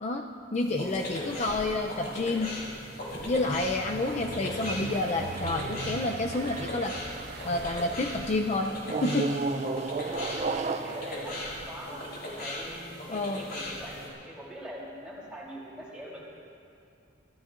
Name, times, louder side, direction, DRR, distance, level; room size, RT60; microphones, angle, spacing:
voice 1, 0.0-2.5 3.3-7.0 7.4-9.3 13.1-13.4, left 2 dB, 40° left, 3 dB, 0.5 m, -29 dB
sound 1, 0.6-14.1, left 1 dB, 55° left, 3.7 m, -39 dB
sound 2, 3.1-8.6, right 3 dB, 55° right, 0.9 m, -48 dB
sound 3, 3.4-8.0 8.8-12.4, right 4 dB, 35° right, 0.4 m, -35 dB
voice 2, 10.0-12.0 12.3-16.2, equal, 5° right, -6 dB, 3.5 m, -43 dB
24.5 x 15.0 x 2.5 m, 2.5 s
head